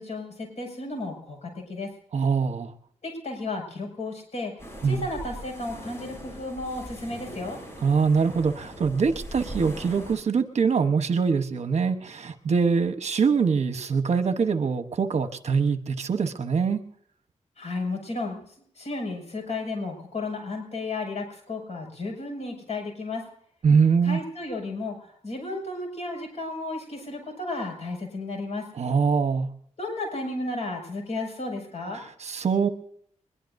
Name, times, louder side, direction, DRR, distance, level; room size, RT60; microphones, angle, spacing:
voice 1, 0.0-1.9 3.0-4.5 4.8-7.6 17.6-18.4 18.8-23.2 24.0-28.6 29.8-32.0, left 2 dB, 60° left, 1 dB, 6.6 m, -33 dB
voice 2, 2.1-2.7 4.8-5.0 7.8-16.8 23.6-24.2 28.7-29.5 31.9-32.7, right 5 dB, 60° right, 8 dB, 1.1 m, -23 dB
sound 1, 4.6-10.1, right 1 dB, 20° left, 7.5 m, -41 dB
22.0 x 21.5 x 2.7 m, 0.65 s
wide cardioid pair, 180°, 13 cm